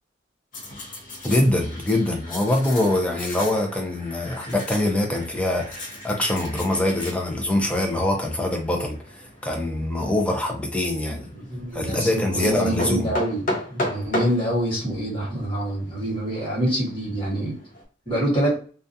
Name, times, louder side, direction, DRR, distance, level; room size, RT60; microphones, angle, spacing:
sound 1, 0.5-17.8, left 1 dB, 45° left, 0.7 m, -36 dB
voice 1, 1.2-11.3 11.7-13.1, left 1 dB, 5° left, 1 dB, 0.4 m, -24 dB
voice 2, 11.3-13.4 13.7-17.6 18.1-18.6, right 1 dB, 30° left, -5 dB, 1.2 m, -26 dB
2.3 x 2.2 x 2.6 m, 0.41 s
head